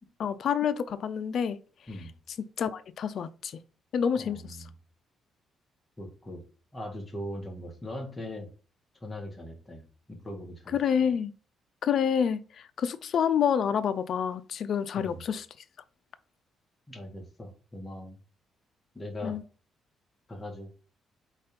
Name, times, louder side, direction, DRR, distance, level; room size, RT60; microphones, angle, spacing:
voice 1, 0.2-1.6 2.6-3.6 3.9-4.6 10.7-11.3 11.8-15.5 19.2-19.4, left 8 dB, 60° left, 0.5 m, -28 dB
voice 2, 4.2-4.6 6.0-6.4 6.7-8.5 9.0-10.8 15.0-15.2 16.9-18.2 18.9-19.4 20.3-20.7, left 1 dB, 20° left, 1.9 m, -40 dB
4.3 x 4.1 x 5.2 m
cardioid pair, 90°, 0 cm